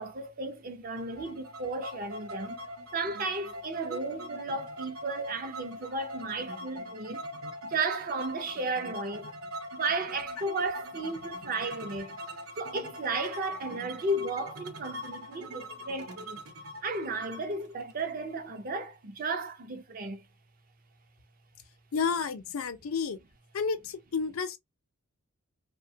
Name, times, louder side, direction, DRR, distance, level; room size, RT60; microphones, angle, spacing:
voice 1, 0.0-2.6 2.9-7.2 7.6-9.3 9.7-12.2 12.6-16.4 16.8-20.2, right 3 dB, 40° right, 0.5 m, -34 dB
sound 1, 1.0-18.7, equal, 75° right, 0.9 m, -42 dB
voice 2, 21.9-23.2 23.5-24.6, left 5 dB, 75° left, 0.5 m, -31 dB
2.7 x 2.2 x 2.7 m
head